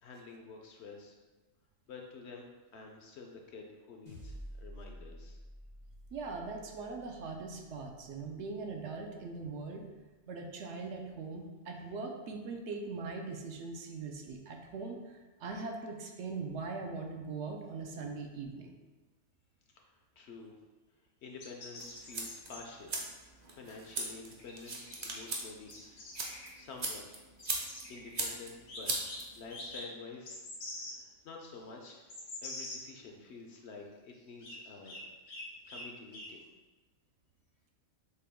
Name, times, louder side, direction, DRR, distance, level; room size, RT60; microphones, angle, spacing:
voice 1, 0.0-1.2 1.9-5.4 19.7-19.8 20.2-20.5 21.2-23.2 23.5-27.2 27.9-35.0 35.7-36.4, left 4 dB, 65° left, 1 dB, 0.7 m, -50 dB
sound 1, 4.1-8.6, equal, 90° right, 1.5 m, -50 dB
voice 2, 6.1-9.9 10.3-18.7, right 4 dB, 70° right, 2 dB, 0.8 m, -41 dB
sound 2, 21.4-22.6 24.4-25.3 25.6-26.5 27.4-28.2 28.7-29.2 29.5-29.8 30.3-30.9 31.6-31.7 32.1-32.8 34.4-34.6 34.8-35.0 35.3-35.8 36.1-36.3, left 2 dB, 85° left, 1.5 m, -45 dB
sound 3, 21.8-29.7, right 2 dB, 40° right, 0.6 m, -40 dB
6.6 x 2.2 x 3.5 m, 1.2 s
omnidirectional pair, 1.4 m